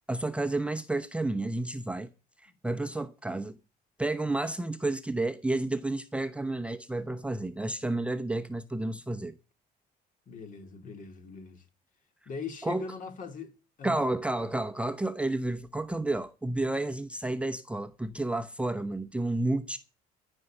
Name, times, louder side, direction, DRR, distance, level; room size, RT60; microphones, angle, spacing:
voice 1, 0.1-2.1 2.4-3.6 4.0-9.3 12.6-12.9 13.8-19.8, right 2 dB, 5° right, 0.8 m, -31 dB
voice 2, 10.3-11.6 12.3-13.5 13.8-14.1, left 5 dB, 50° left, 2.4 m, -40 dB
13.5 x 5.4 x 9.0 m
cardioid pair, 110°, 17 cm